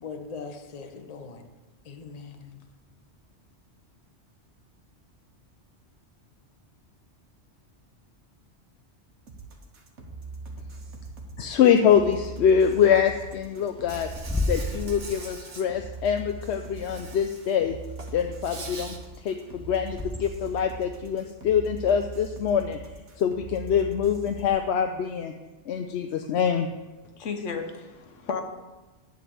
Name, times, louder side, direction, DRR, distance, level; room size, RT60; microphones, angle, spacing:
voice 1, 0.0-1.4 1.8-2.6, left 5 dB, 35° left, 6 dB, 0.8 m, -40 dB
sound 1, 9.3-24.5, right 3 dB, 70° right, 1.4 m, -41 dB
voice 2, 11.4-17.8 18.1-25.3 25.6-26.7, left 8 dB, 70° left, 5 dB, 0.8 m, -24 dB
Bird / Wind, 11.9-20.6, left 1 dB, 5° left, 0.6 m, -36 dB
Insect, 13.9-15.6 16.8-17.6 17.9-19.0, right 3 dB, 35° right, 1.0 m, -43 dB
voice 3, 27.2-28.4, left 5 dB, 90° left, 6 dB, 1.2 m, -33 dB
11.0 x 4.0 x 7.7 m, 1.2 s
omnidirectional pair, 1.2 m